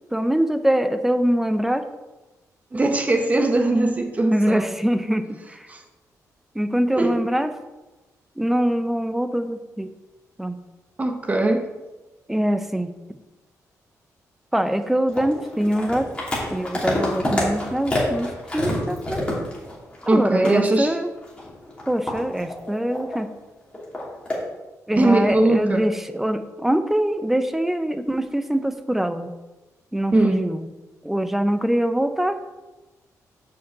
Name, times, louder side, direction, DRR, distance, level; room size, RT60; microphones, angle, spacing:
voice 1, 0.1-1.9 4.3-5.7 6.5-7.5 8.4-9.9 10.4-10.6 12.3-12.9 14.5-16.1 16.5-19.2 20.1-21.1 21.9-23.3 24.9-29.3 29.9-30.7 31.0-32.4, right 1 dB, 5° right, 9 dB, 0.6 m, -23 dB
voice 2, 2.7-4.7 5.7-5.8 7.0-7.2 11.0-11.7 20.1-20.9 25.0-25.8 30.1-30.4, right 2 dB, 25° right, 4 dB, 1.0 m, -20 dB
sound 1, 15.1-20.2 20.4-20.6 21.2-23.2 23.7-24.4, left 1 dB, 20° left, 2.6 m, -27 dB
6.5 x 5.3 x 7.2 m, 1.1 s
wide cardioid pair, 145°, 6 cm